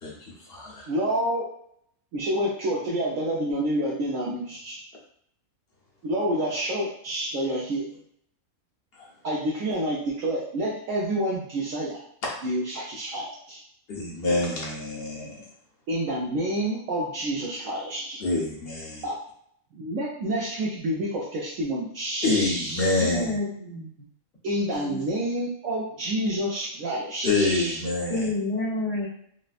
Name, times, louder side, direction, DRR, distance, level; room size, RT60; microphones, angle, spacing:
voice 1, 0.0-0.9 9.0-9.1 13.9-15.4 18.2-19.0 22.2-23.4 27.2-28.3, left 2 dB, 45° left, -4 dB, 1.1 m, -27 dB
voice 2, 0.9-1.5 2.1-4.8 6.0-7.9 9.2-12.0 12.4-13.6 15.9-18.2 19.0-19.2 19.7-23.1 24.4-27.8, right 1 dB, 70° right, -6 dB, 1.0 m, -28 dB
voice 3, 23.0-23.9 24.7-25.0 28.1-29.1, left 2 dB, 70° left, -9 dB, 2.0 m, -29 dB
4.2 x 2.1 x 2.4 m, 0.66 s
omnidirectional pair, 1.5 m